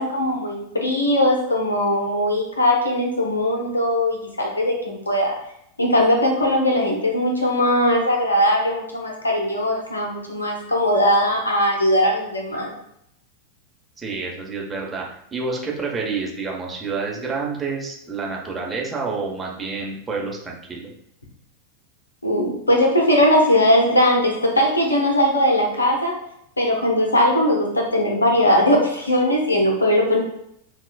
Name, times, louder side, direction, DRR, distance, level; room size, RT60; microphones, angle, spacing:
voice 1, 0.0-5.3 5.8-12.7 22.2-26.2 26.6-30.2, left 1 dB, 80° left, 0 dB, 0.8 m, -19 dB
voice 2, 14.0-20.9, right 4 dB, 15° right, -2 dB, 0.8 m, -28 dB
5.8 x 2.4 x 2.3 m, 0.75 s
figure-of-eight pair, 90°, 0 cm